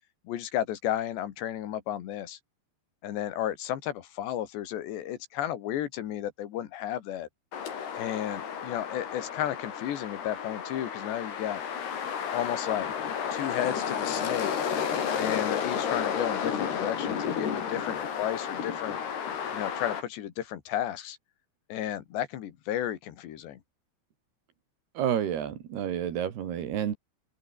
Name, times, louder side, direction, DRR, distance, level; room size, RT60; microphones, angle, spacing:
voice 1, 0.3-2.4 3.0-7.3 7.9-11.6 12.3-12.9 13.3-14.5 15.1-19.0 19.5-21.2 21.7-23.6, left 11 dB, 85° left, 4.2 m, -33 dB
sound 1, 7.5-20.0, left 7 dB, 70° left, 5.5 m, -32 dB
voice 2, 25.0-27.0, right 9 dB, 70° right, 4.4 m, -30 dB
open air
omnidirectional pair, 4.9 m